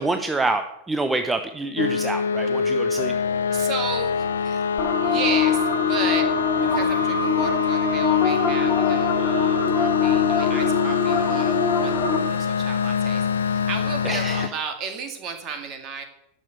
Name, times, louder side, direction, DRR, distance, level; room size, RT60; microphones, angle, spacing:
voice 1, 0.0-3.1 14.0-14.5, right 2 dB, 10° right, 8 dB, 0.7 m, -26 dB
sound 1, 1.8-14.5, left 6 dB, 70° left, 0.5 m, -25 dB
voice 2, 3.5-4.7 5.0-6.3 6.6-16.0, right 6 dB, 35° right, 6 dB, 2.0 m, -33 dB
sound 2, 4.8-12.2, left 6 dB, 30° left, 2.2 m, -23 dB
11.5 x 6.8 x 8.0 m, 0.82 s
figure-of-eight pair, 90°, 0 cm